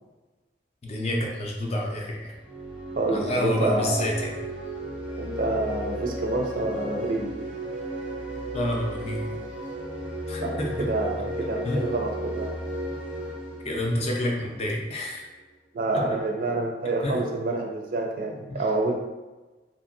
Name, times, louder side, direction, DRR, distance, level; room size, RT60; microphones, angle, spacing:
voice 1, 0.8-2.3 3.1-4.3 8.5-9.3 10.3-10.7 11.6-11.8 13.6-15.2 15.9-16.2 17.0-17.1 18.5-18.6, left 1 dB, 35° left, 0 dB, 0.5 m, -28 dB
sound 1, 2.3-15.0, equal, 5° right, 0.6 m, -34 dB
voice 2, 3.0-4.0 5.2-7.4 10.4-12.6 15.7-19.0, right 2 dB, 50° right, 1 dB, 0.5 m, -28 dB
2.7 x 2.6 x 2.6 m, 1.2 s
head